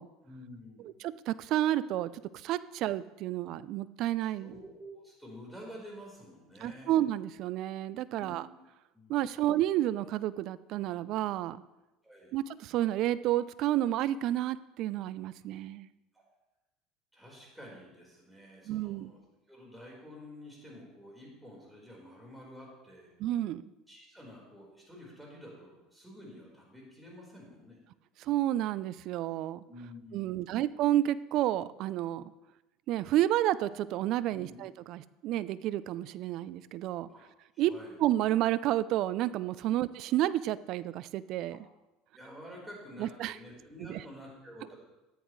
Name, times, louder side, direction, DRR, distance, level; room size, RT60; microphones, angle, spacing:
voice 1, 0.2-0.9 4.4-6.9 8.1-8.5 8.9-9.6 12.0-12.3 16.1-16.2 17.1-19.2 19.5-23.1 23.9-27.8 29.7-30.6 34.3-34.6 37.1-37.2 37.5-38.0 39.7-39.8 42.1-44.8, equal, 5° right, -3 dB, 4.3 m, -49 dB
voice 2, 0.8-4.5 6.6-8.5 9.1-11.6 12.3-15.9 18.7-19.1 23.2-23.6 28.2-29.6 30.1-32.3 32.9-37.1 37.6-37.7 38.0-41.6 43.0-43.4 43.8-44.0, right 13 dB, 60° right, 18 dB, 0.4 m, -30 dB
14.0 x 10.5 x 3.2 m, 1.0 s
supercardioid pair, 90°, 0 cm